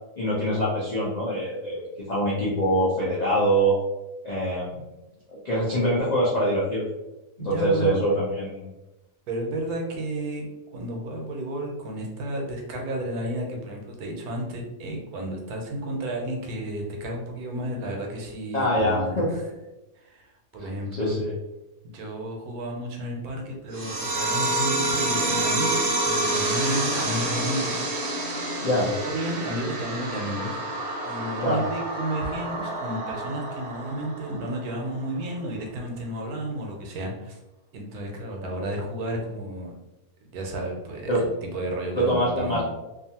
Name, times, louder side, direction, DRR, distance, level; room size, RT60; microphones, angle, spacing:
voice 1, 0.2-3.8 4.2-4.7 5.3-6.8 7.4-8.7 18.5-19.3 20.6-21.3 28.6-28.9 31.4-31.6 41.1-41.2 41.9-42.6, equal, 80° left, -6 dB, 0.3 m, -24 dB
voice 2, 7.4-8.0 9.3-19.4 20.0-21.3 21.8-28.4 28.9-30.6 31.0-37.4 37.7-39.8 40.2-42.6, right 1 dB, 80° right, 1 dB, 1.1 m, -32 dB
sound 1, 23.7-34.8, right 2 dB, 60° right, 0.7 m, -28 dB
2.5 x 2.4 x 2.7 m, 1.0 s
omnidirectional pair, 1.6 m